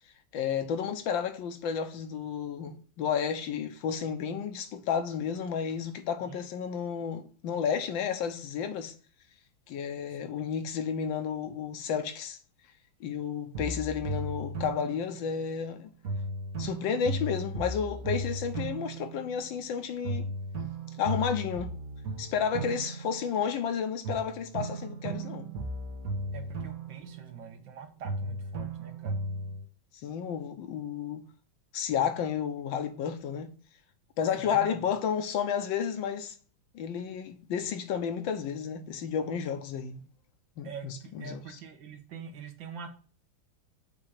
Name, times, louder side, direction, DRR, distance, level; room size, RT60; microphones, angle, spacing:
voice 1, 0.3-8.9 9.7-12.4 13.0-15.9 16.6-20.3 21.0-21.7 22.2-25.5 30.0-31.2 31.7-33.5 34.2-36.3 36.7-40.0 40.6-41.4, left 7 dB, 70° left, 1.5 m, -32 dB
sound 1, 13.5-15.7 16.0-19.8 20.0-23.7 24.0-27.8 28.0-29.6, right 2 dB, 45° right, 1.6 m, -36 dB
voice 2, 26.3-29.2 34.4-34.8 40.6-42.9, right 7 dB, 65° right, 1.7 m, -45 dB
7.3 x 2.9 x 4.9 m
omnidirectional pair, 2.3 m